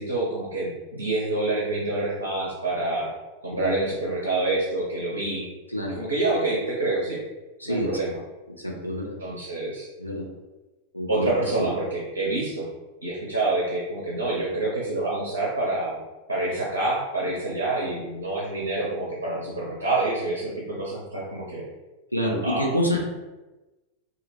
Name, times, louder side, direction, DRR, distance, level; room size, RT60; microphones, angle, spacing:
voice 1, 0.0-3.1 3.4-5.5 6.0-7.2 7.6-8.2 9.2-9.9 11.1-12.7 13.0-16.0 16.3-21.6 22.4-22.8, right 2 dB, 75° right, -5 dB, 0.5 m, -27 dB
voice 2, 8.6-9.1 10.0-10.3 10.9-11.3 11.6-11.7 22.1-23.0, equal, 90° left, -1 dB, 0.5 m, -27 dB
2.2 x 2.1 x 3.0 m, 1.1 s
figure-of-eight pair, 90°, 0 cm